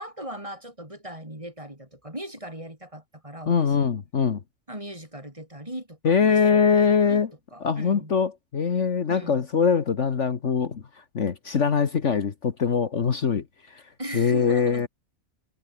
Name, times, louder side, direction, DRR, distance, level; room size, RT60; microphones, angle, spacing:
voice 1, 0.0-3.5 3.8-3.9 4.7-6.6 7.1-7.2 7.5-8.1 9.1-9.5 14.0-14.9, right 1 dB, 20° right, 5.8 m, -38 dB
voice 2, 3.5-4.4 6.0-7.3 7.6-13.8 14.1-14.9, left 6 dB, 55° left, 1.6 m, -23 dB
omnidirectional pair, 1.5 m